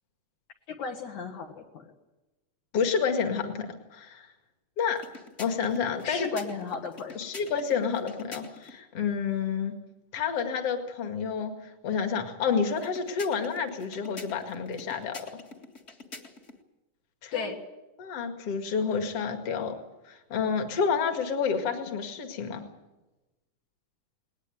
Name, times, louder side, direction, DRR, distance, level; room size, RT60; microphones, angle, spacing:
voice 1, 0.7-1.9 6.0-7.2 17.3-17.6, left 5 dB, 65° left, 1 dB, 2.8 m, -34 dB
voice 2, 2.7-4.3 4.8-5.1 5.4-6.3 7.1-9.8 10.1-15.3 17.2-17.6 18.0-19.8 20.1-22.6, left 6 dB, 50° left, 6 dB, 2.8 m, -29 dB
sound 1, 4.9-8.8 12.7-16.6, left 3 dB, 30° left, 1.4 m, -47 dB
19.5 x 19.5 x 9.3 m, 1.1 s
omnidirectional pair, 3.8 m